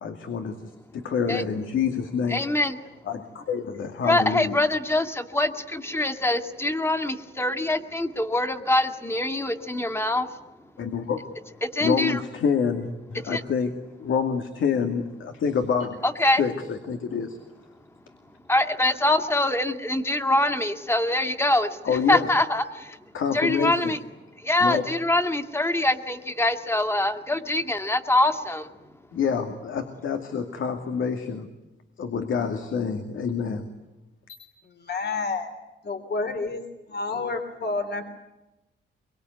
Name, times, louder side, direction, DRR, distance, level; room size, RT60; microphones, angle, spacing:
voice 1, 0.0-2.4 3.1-4.6 10.8-11.2 11.8-17.4 21.8-22.3 23.1-23.9 24.6-24.9 29.1-31.5 32.0-33.7 34.3-34.4, left 6 dB, 85° left, 6 dB, 2.4 m, -27 dB
voice 2, 2.3-2.8 4.0-10.3 11.6-12.2 13.2-13.4 16.0-16.4 18.5-23.0 23.3-24.0 24.4-28.7, left 1 dB, 10° left, 7 dB, 2.1 m, -24 dB
voice 3, 34.8-35.5 35.8-38.0, left 3 dB, 55° left, 7 dB, 3.4 m, -29 dB
25.0 x 23.5 x 9.5 m, 0.99 s
wide cardioid pair, 125°, 20 cm